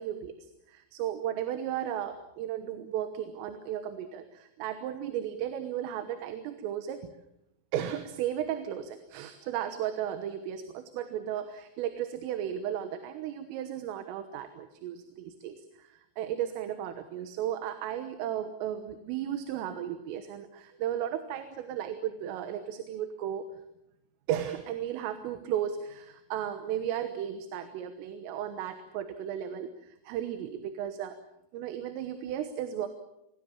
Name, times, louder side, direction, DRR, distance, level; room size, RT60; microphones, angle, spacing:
voice 1, 0.0-7.1 7.7-23.5 24.3-31.2 31.5-32.9, right 10 dB, 85° right, 9 dB, 3.8 m, -35 dB
25.5 x 21.0 x 7.3 m, 0.84 s
omnidirectional pair, 5.7 m